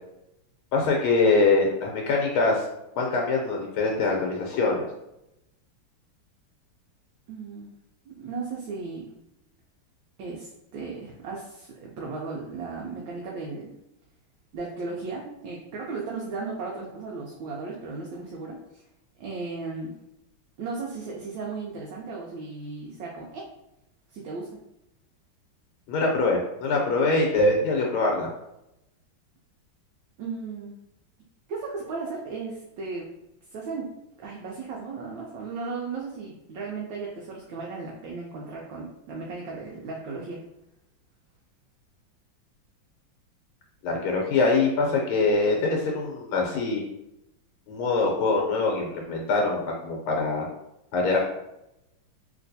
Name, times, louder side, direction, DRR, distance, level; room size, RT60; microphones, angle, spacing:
voice 1, 0.7-2.6 3.0-4.8 25.9-28.3 43.8-46.8 47.7-50.5 50.9-51.2, left 3 dB, 90° left, 0 dB, 1.5 m, -23 dB
voice 2, 7.3-7.7 8.1-9.1 10.2-13.7 14.5-18.8 19.2-20.0 20.6-23.5 24.1-24.6 30.2-30.8 31.5-33.1 33.5-33.9 34.2-40.4, right 4 dB, 75° right, -3 dB, 1.2 m, -35 dB
3.2 x 2.9 x 2.6 m, 0.88 s
omnidirectional pair, 2.3 m